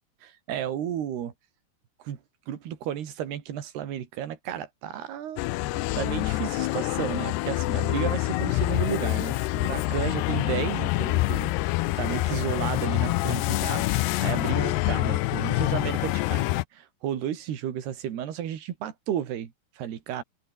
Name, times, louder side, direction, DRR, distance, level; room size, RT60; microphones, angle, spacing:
voice 1, 0.2-1.3 2.0-2.2 2.5-5.4 5.7-11.5 12.0-20.2, right 10 dB, 70° right, 4.5 m, -33 dB
sound 1, 5.4-16.6, left 19 dB, 85° left, 2.8 m, -26 dB
open air
omnidirectional pair, 4.8 m